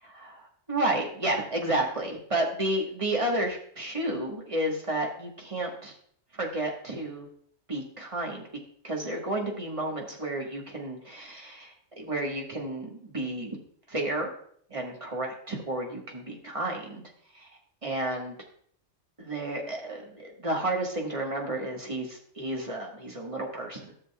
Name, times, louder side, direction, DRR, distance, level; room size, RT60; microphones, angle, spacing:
voice 1, 0.0-0.4 0.7-5.9 6.3-7.3 7.7-8.5 8.8-13.6 13.9-14.3 14.7-17.0 17.3-17.5 17.8-18.3 19.2-23.9, right 1 dB, 25° right, -1 dB, 1.5 m, -31 dB
13.0 x 6.6 x 2.3 m, 0.62 s
omnidirectional pair, 1.3 m